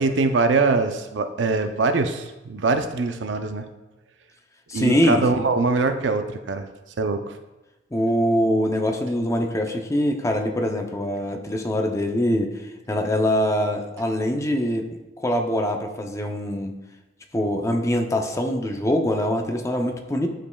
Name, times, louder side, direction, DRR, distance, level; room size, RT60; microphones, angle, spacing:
voice 1, 0.0-3.6 4.7-6.7 7.0-7.2, right 3 dB, 80° right, 7 dB, 0.6 m, -22 dB
voice 2, 4.7-5.5 7.9-16.8 17.3-20.3, equal, 15° left, 3 dB, 0.6 m, -23 dB
11.5 x 5.1 x 2.3 m, 1.1 s
head